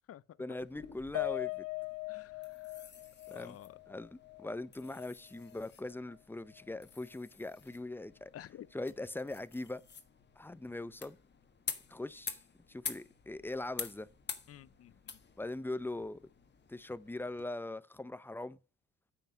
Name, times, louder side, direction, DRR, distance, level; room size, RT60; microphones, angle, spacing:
voice 1, 0.4-1.7 3.3-3.6 3.9-8.3 8.7-9.8 10.4-11.2 11.9-12.4 12.7-14.1 15.4-16.2 16.7-18.6, left 2 dB, 5° left, 0.6 m, -41 dB
sound 1, 0.6-17.5, left 6 dB, 35° left, 1.4 m, -49 dB
Piano, 1.1-5.6 6.0-6.1 6.5-6.7, left 24 dB, 90° left, 0.9 m, -41 dB
voice 2, 3.3-3.7 8.3-8.7 14.5-15.2, left 11 dB, 50° left, 0.6 m, -51 dB
9.0 x 5.8 x 5.2 m
cardioid pair, 90°, 30 cm